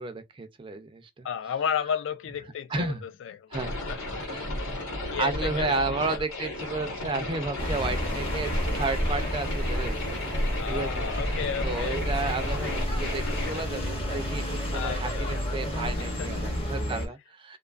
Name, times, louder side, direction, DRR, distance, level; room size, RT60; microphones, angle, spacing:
voice 1, 0.0-1.3 2.7-3.0 3.5-3.8 4.2-4.5 4.9-17.6, right 3 dB, 25° right, 0.4 m, -33 dB
voice 2, 1.2-2.9 3.2-3.5 3.9-4.2 5.1-5.8 6.1-6.2 10.6-12.0 14.7-15.4 16.2-16.3, left 8 dB, 60° left, 0.3 m, -32 dB
sound 1, 3.5-13.6, left 1 dB, 90° left, 1.2 m, -34 dB
sound 2, 7.6-17.1, equal, 30° left, 0.7 m, -30 dB
2.5 x 2.3 x 2.4 m
head